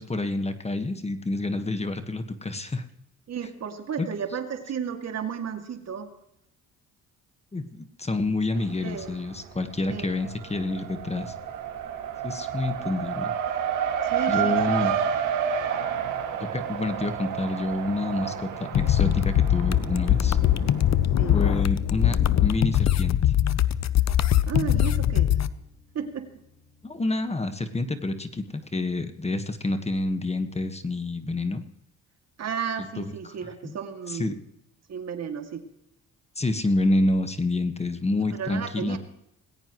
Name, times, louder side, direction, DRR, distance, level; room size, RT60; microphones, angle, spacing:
voice 1, 0.0-2.8 4.0-4.1 7.5-11.3 12.2-13.3 14.3-14.9 16.4-20.4 21.3-23.3 26.8-31.6 33.0-33.3 33.6-33.8 34.1-34.3 36.4-39.0, left 2 dB, 20° left, 8 dB, 1.5 m, -28 dB
voice 2, 3.3-6.1 8.8-9.2 9.9-10.1 14.0-15.0 21.2-21.4 24.5-25.4 25.9-26.3 32.4-34.4 34.9-35.6 38.2-39.0, right 7 dB, 60° right, 5 dB, 2.5 m, -33 dB
Race car auto racing, 8.5-9.3 9.6-21.0, right 8 dB, 85° right, 2.3 m, -30 dB
sound 1, 18.7-25.5, left 11 dB, 60° left, 0.8 m, -22 dB
sound 2, 19.6-28.7, left 4 dB, 40° left, 3.2 m, -42 dB
20.0 x 17.0 x 3.1 m, 0.80 s
cardioid pair, 90°, 30 cm